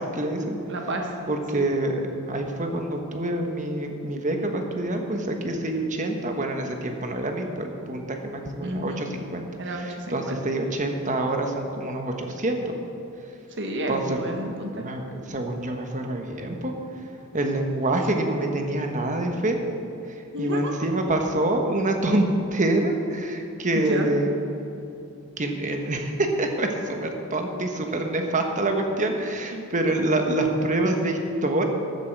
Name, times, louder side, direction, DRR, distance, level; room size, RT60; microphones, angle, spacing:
voice 1, 0.0-0.6 1.3-2.0 2.3-12.7 13.9-14.2 14.7-16.7 17.3-19.6 20.1-24.3 25.4-31.6, right 1 dB, 35° right, 3 dB, 1.3 m, -26 dB
voice 2, 0.7-1.1 1.5-1.7 8.6-9.0 9.6-10.3 13.6-14.8 18.1-18.2 20.3-20.7 23.9-24.1 29.5-29.9, right 1 dB, 55° right, 2 dB, 1.6 m, -30 dB
14.5 x 11.5 x 4.7 m, 2.7 s
head